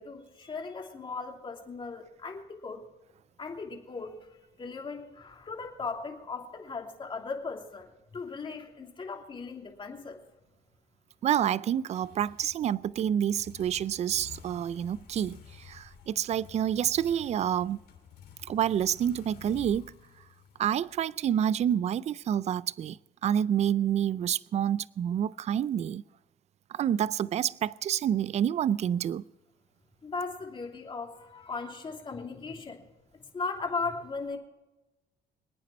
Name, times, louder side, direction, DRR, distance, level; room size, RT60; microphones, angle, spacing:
voice 1, 0.0-2.8 3.4-4.1 4.6-10.2 30.0-32.8 33.3-34.4, left 4 dB, 30° left, 3.0 m, -37 dB
voice 2, 11.2-17.8 18.5-19.9 20.6-23.0 23.2-26.0 26.7-29.2, right 9 dB, 40° right, 0.4 m, -28 dB
sound 1, 11.8-21.6, left 8 dB, 70° left, 3.0 m, -52 dB
26.0 x 9.2 x 4.4 m
cardioid pair, 110°, 17 cm